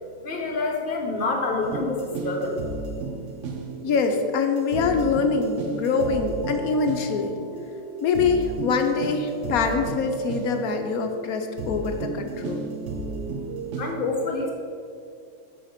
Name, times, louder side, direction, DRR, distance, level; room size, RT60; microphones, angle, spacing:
voice 1, 0.2-2.6 13.8-14.5, left 3 dB, 35° left, 1 dB, 1.0 m, -27 dB
sound 1, 1.6-13.9, right 3 dB, 60° right, 0.8 m, -33 dB
voice 2, 3.8-7.3 8.0-12.7, left 4 dB, 65° left, 5 dB, 1.0 m, -24 dB
6.8 x 5.6 x 5.1 m, 2.3 s
omnidirectional pair, 1.9 m